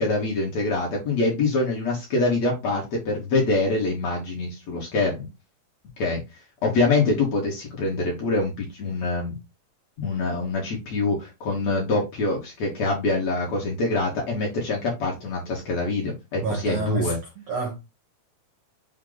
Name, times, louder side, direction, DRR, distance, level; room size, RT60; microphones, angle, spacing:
voice 1, 0.0-5.3 6.0-6.2 6.6-9.4 10.0-17.2, left 3 dB, 65° left, 1.8 m, -25 dB
voice 2, 16.4-17.1 17.5-17.7, right 3 dB, 85° right, 1.4 m, -27 dB
6.3 x 2.2 x 3.8 m
omnidirectional pair, 4.4 m